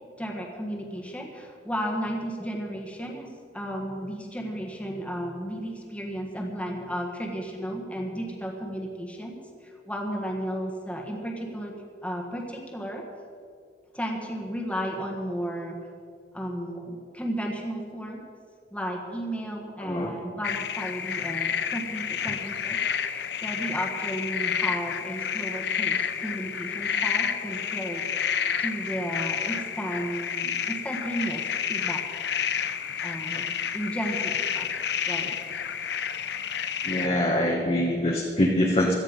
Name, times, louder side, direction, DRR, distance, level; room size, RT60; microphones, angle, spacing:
voice 1, 0.2-11.7 12.0-13.0 13.9-15.8 16.3-18.2 18.7-32.0 33.0-34.7 35.0-35.4, equal, 5° left, 0 dB, 1.5 m, -34 dB
voice 2, 19.8-20.1 36.8-38.9, left 1 dB, 30° left, -1 dB, 1.2 m, -24 dB
sound 1, 20.4-37.1, left 8 dB, 65° left, 0.7 m, -30 dB
17.0 x 13.0 x 5.3 m, 2.3 s
head